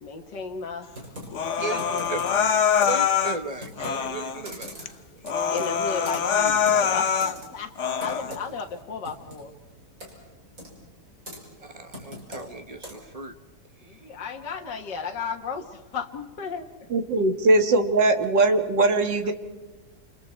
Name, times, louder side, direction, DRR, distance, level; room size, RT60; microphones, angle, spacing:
voice 1, 0.0-0.9 1.5-3.3 5.5-7.7 8.0-9.5 13.8-16.9, left 5 dB, 75° left, 2 dB, 2.1 m, -35 dB
Computer keyboard, 0.9-13.2, equal, 50° right, 6.4 m, -44 dB
Human voice, 1.3-3.4 3.8-4.4 4.9-5.0 5.2-7.4 7.8-8.4, left 7 dB, 50° left, 1.1 m, -24 dB
voice 2, 2.8-4.8 5.1-5.3 11.6-13.4 13.8-14.1, right 3 dB, 25° right, 8 dB, 1.2 m, -36 dB
voice 3, 16.9-19.3, right 2 dB, 85° right, 7 dB, 2.4 m, -20 dB
29.0 x 28.0 x 4.5 m, 1.2 s
omnidirectional pair, 1.9 m